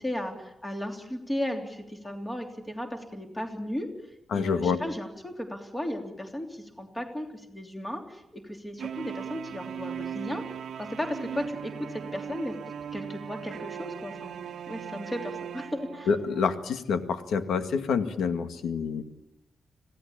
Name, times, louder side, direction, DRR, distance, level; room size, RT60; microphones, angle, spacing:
voice 1, 0.0-3.9 4.3-10.4 10.8-12.6 12.9-14.4 14.7-16.1, left 1 dB, 10° left, 4 dB, 3.2 m, -35 dB
voice 2, 4.3-4.8 16.1-19.0, left 5 dB, 85° left, 9 dB, 1.9 m, -27 dB
sound 1, 8.8-16.5, right 8 dB, 65° right, 1.1 m, -39 dB
26.5 x 16.5 x 8.8 m, 0.87 s
wide cardioid pair, 175°, 0 cm